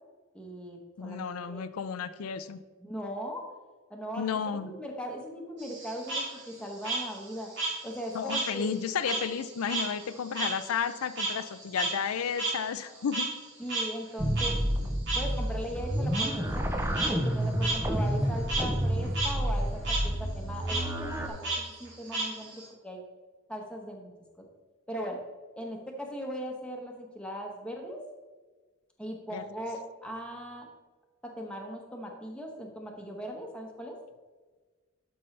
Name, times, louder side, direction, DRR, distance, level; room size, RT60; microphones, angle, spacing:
voice 1, 0.3-1.6 2.8-3.5 3.9-7.5 7.8-8.7 13.6-14.6 15.1-16.7 17.1-23.0 23.5-24.1 24.4-24.5 24.9-25.2 25.6-28.0 29.0-30.7 31.2-34.0, equal, 5° left, 0 dB, 1.1 m, -39 dB
voice 2, 1.0-2.6 4.2-4.7 8.1-13.3 29.3-29.4, left 7 dB, 90° left, 12 dB, 0.4 m, -32 dB
Frog, 5.6-8.5 8.8-13.4 13.7-13.8 14.4-14.5 15.1-15.2 16.1-16.3 16.8-17.1 17.6-17.8 18.1-18.6 19.0-19.3 19.6-20.0 20.7-20.8 21.4-22.7, right 3 dB, 55° right, 2.8 m, -32 dB
sound 1, 14.2-21.3, equal, 15° right, 0.6 m, -30 dB
12.0 x 5.4 x 3.3 m, 1.3 s
head